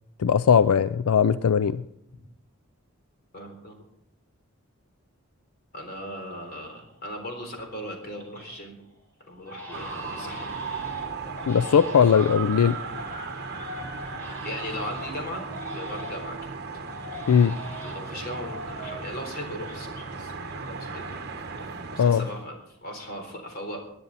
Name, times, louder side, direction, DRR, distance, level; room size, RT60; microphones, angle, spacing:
voice 1, 0.2-1.8 11.5-12.8 17.3-17.6 22.0-22.2, left 7 dB, 80° left, 14 dB, 0.4 m, -19 dB
voice 2, 3.3-3.8 5.7-8.8 9.3-10.5 14.4-15.4 15.7-16.5 17.8-21.2 21.9-23.8, equal, 40° left, 3 dB, 3.7 m, -38 dB
Crying sobbing, 6.8-7.3 7.7-8.5 8.8-9.0 9.4-16.4 16.8-20.2 20.4-22.0 22.2-22.8, left 1 dB, 10° left, 4.1 m, -43 dB
sound 1, 9.7-22.4, right 4 dB, 45° right, 1.1 m, -36 dB
20.0 x 10.5 x 4.1 m, 0.78 s
head